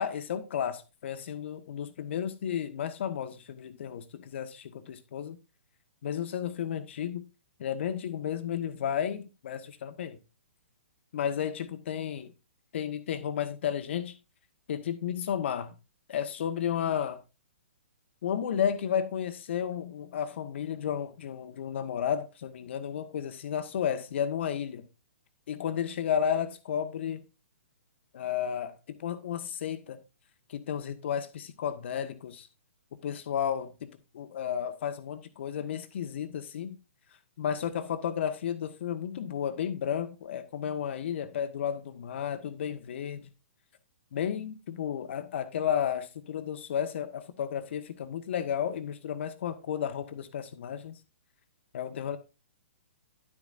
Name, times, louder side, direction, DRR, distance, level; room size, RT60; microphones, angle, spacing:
voice 1, 0.0-5.4 6.0-7.2 7.6-10.2 11.1-12.3 12.7-14.1 14.7-15.7 16.1-17.2 18.2-24.9 25.5-27.2 28.1-30.0 30.5-32.5 33.0-33.9 34.1-36.8 37.4-43.3 44.1-51.0 51.7-52.2, left 8 dB, 55° left, 1.4 m, -32 dB
11.5 x 8.5 x 2.6 m
hypercardioid pair, 130°, 7 cm